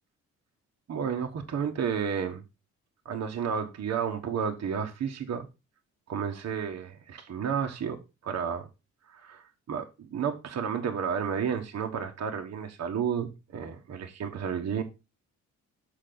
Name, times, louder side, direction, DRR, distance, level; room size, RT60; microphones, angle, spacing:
voice 1, 0.9-2.4 3.0-5.5 6.1-8.0 8.2-8.7 9.1-14.8, right 7 dB, 60° right, 1.4 m, -31 dB
6.9 x 5.7 x 3.9 m
cardioid pair, 90°, 30 cm